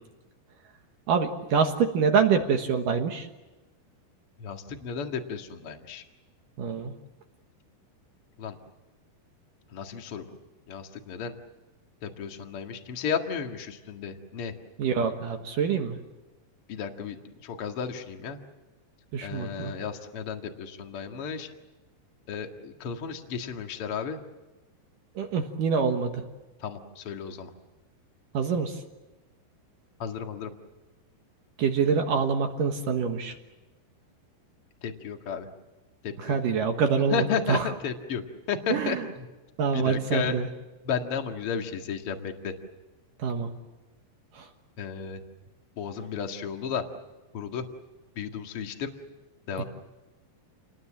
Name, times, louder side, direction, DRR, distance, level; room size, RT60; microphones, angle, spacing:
voice 1, 1.1-3.3 6.6-6.9 14.8-16.0 19.1-19.7 25.2-26.2 28.3-28.8 31.6-33.3 36.2-37.7 38.7-39.0 39.6-40.5 43.2-43.5 44.4-44.5, right 6 dB, 60° right, 5 dB, 2.5 m, -26 dB
voice 2, 4.4-6.0 8.4-8.6 9.7-10.3 10.7-11.3 12.0-14.5 16.7-17.2 17.4-18.4 19.2-21.5 22.3-24.2 26.6-27.5 30.0-30.5 34.8-35.5 36.0-36.4 37.1-39.2 39.7-40.4 40.8-42.5 44.8-45.2 45.8-46.8 47.3-47.6 48.2-48.9 49.5-49.6, left 6 dB, 45° left, 5 dB, 1.9 m, -33 dB
29.0 x 20.5 x 7.5 m, 1.1 s
omnidirectional pair, 5.2 m